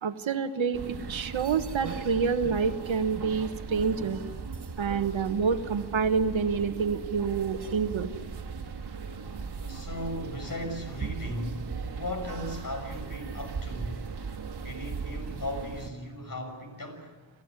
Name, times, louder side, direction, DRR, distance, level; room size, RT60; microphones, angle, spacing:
voice 1, 0.0-4.2 4.8-8.1, right 5 dB, 80° right, 9 dB, 1.4 m, -28 dB
sound 1, 0.7-15.9, right 5 dB, 55° right, 1.9 m, -38 dB
voice 2, 9.6-17.2, left 1 dB, 45° left, 4 dB, 6.3 m, -37 dB
28.0 x 14.0 x 9.7 m, 1.3 s
wide cardioid pair, 90°, 46 cm